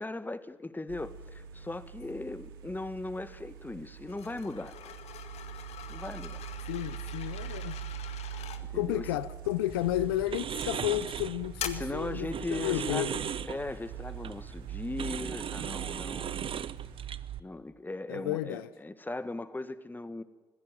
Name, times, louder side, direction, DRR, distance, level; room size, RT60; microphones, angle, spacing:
voice 1, 0.0-5.0 5.9-6.4 8.3-9.1 11.7-13.1 13.5-16.7 17.4-20.2, left 2 dB, 15° left, 1.8 m, -38 dB
sound 1, 0.9-17.0, right 8 dB, 85° right, 2.4 m, -45 dB
sound 2, 4.1-8.6 9.6-9.9 10.6-11.1 11.6-11.7, left 10 dB, 60° left, 1.9 m, -43 dB
voice 2, 6.7-7.8 8.7-13.2 18.1-18.7, left 15 dB, 80° left, 0.7 m, -32 dB
sound 3, 9.7-17.4, right 9 dB, 50° right, 0.9 m, -37 dB
25.0 x 16.5 x 9.2 m
hypercardioid pair, 45°, 12 cm